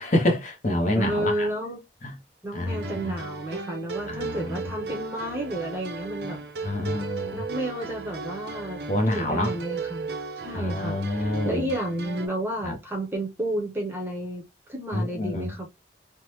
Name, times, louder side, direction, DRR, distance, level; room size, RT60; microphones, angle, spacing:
voice 1, 0.0-1.5 2.0-2.1 2.5-3.1 4.1-4.7 6.6-7.4 8.9-9.5 10.5-11.7 12.6-12.7 14.9-15.5, left 1 dB, 40° left, 0.8 m, -27 dB
voice 2, 0.9-1.8 2.4-6.4 7.3-10.1 10.4-15.7, right 1 dB, 15° right, 0.8 m, -31 dB
sound 1, 2.7-12.3, right 4 dB, 65° right, 0.6 m, -36 dB
3.4 x 2.1 x 3.0 m
head